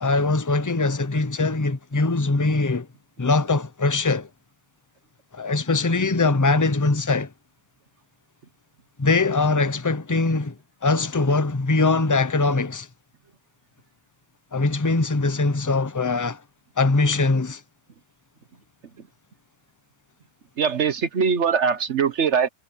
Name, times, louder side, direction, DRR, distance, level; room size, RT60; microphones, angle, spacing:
voice 1, 0.0-2.9 3.2-4.3 5.3-7.3 9.0-10.5 10.8-12.9 14.5-16.4 16.8-17.6, left 3 dB, 20° left, 0.6 m, -22 dB
voice 2, 20.6-22.5, right 6 dB, 55° right, 1.2 m, -21 dB
omnidirectional pair, 1.6 m